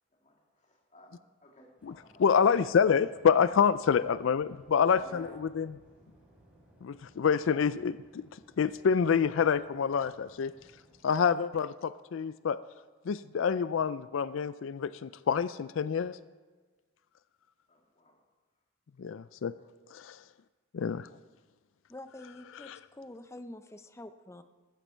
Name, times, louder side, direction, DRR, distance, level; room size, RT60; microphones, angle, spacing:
voice 1, 0.9-2.2 4.9-5.3 17.7-18.2, left 1 dB, 35° left, 0 dB, 2.5 m, -51 dB
voice 2, 1.8-5.8 6.8-8.2 8.6-10.5 11.0-12.6 13.1-16.2 19.0-19.5 19.9-20.2 20.7-21.1 22.6-22.8, left 6 dB, 75° left, 16 dB, 0.4 m, -27 dB
Waves surf, 1.8-11.4, equal, 5° right, 4.2 m, -61 dB
voice 3, 21.9-24.4, left 1 dB, 15° left, 9 dB, 0.5 m, -47 dB
14.5 x 13.5 x 4.5 m, 1.3 s
head